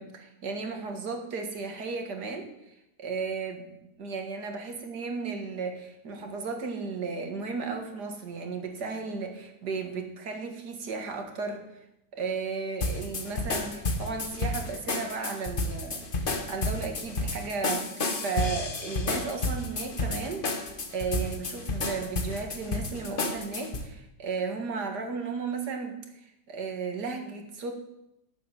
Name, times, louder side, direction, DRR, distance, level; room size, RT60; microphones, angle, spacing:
voice 1, 0.0-11.8 12.1-27.7, right 4 dB, 80° right, 4 dB, 2.3 m, -35 dB
sound 1, 12.8-23.9, left 2 dB, 35° left, 1.3 m, -31 dB
11.0 x 7.3 x 8.9 m, 0.86 s
omnidirectional pair, 1.7 m